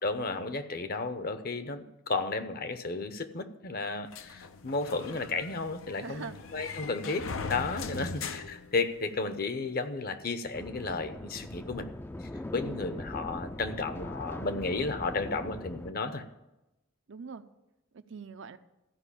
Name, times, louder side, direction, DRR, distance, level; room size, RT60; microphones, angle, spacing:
voice 1, 0.0-11.9 12.2-16.3, left 3 dB, 50° left, 10 dB, 0.8 m, -33 dB
sound 1, 4.1-9.4, left 4 dB, 85° left, 0.7 m, -40 dB
voice 2, 6.0-6.4 7.9-8.2 12.6-13.0 17.1-17.4 17.9-18.6, right 5 dB, 70° right, 10 dB, 0.6 m, -43 dB
sound 2, 10.5-15.9, left 1 dB, 10° left, 0.4 m, -41 dB
14.5 x 5.3 x 8.4 m, 0.97 s
head